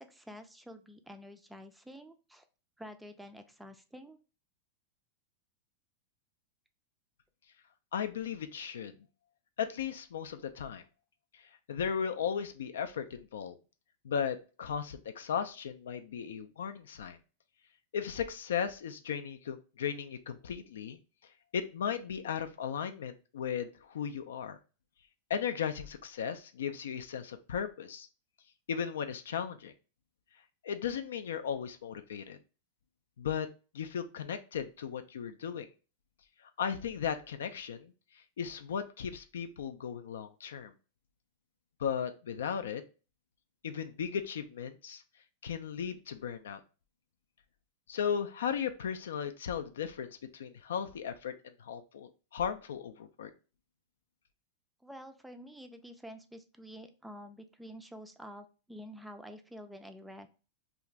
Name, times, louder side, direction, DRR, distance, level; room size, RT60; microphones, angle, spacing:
voice 1, 0.0-2.5 2.8-4.2 54.8-60.3, equal, 5° right, 7 dB, 0.3 m, -49 dB
voice 2, 7.9-8.9 9.6-10.8 11.3-13.6 14.0-17.2 17.9-21.0 21.5-24.6 25.3-28.1 28.7-29.7 30.6-32.4 33.2-33.5 33.7-35.7 36.4-40.7 41.8-42.8 43.6-45.0 45.4-46.6 47.9-53.3, left 7 dB, 85° left, 9 dB, 0.3 m, -36 dB
2.5 x 2.4 x 3.0 m, 0.34 s
hypercardioid pair, 130°, 0 cm